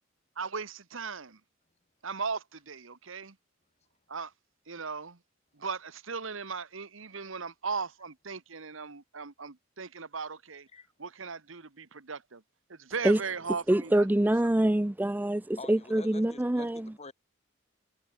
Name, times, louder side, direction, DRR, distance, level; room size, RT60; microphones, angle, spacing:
voice 1, 0.4-1.4 2.0-3.3 4.1-4.3 4.7-5.2 5.6-10.7 11.0-12.4 12.7-14.1, right 5 dB, 75° right, 1.4 m, -37 dB
voice 2, 13.7-16.9, right 1 dB, 10° right, 0.4 m, -25 dB
voice 3, 15.6-17.1, left 3 dB, 35° left, 3.1 m, -47 dB
head